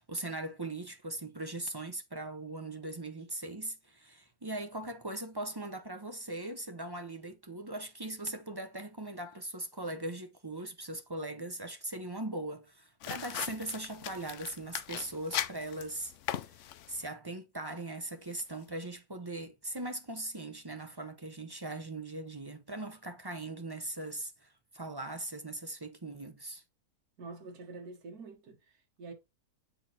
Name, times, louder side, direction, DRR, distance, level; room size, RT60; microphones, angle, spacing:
voice 1, 0.0-26.6, right 2 dB, 25° right, 0.5 m, -40 dB
sound 1, 13.0-17.1, left 11 dB, 65° left, 0.8 m, -39 dB
voice 2, 27.2-29.1, right 3 dB, 75° right, 2.0 m, -47 dB
8.0 x 4.2 x 4.1 m
omnidirectional pair, 1.6 m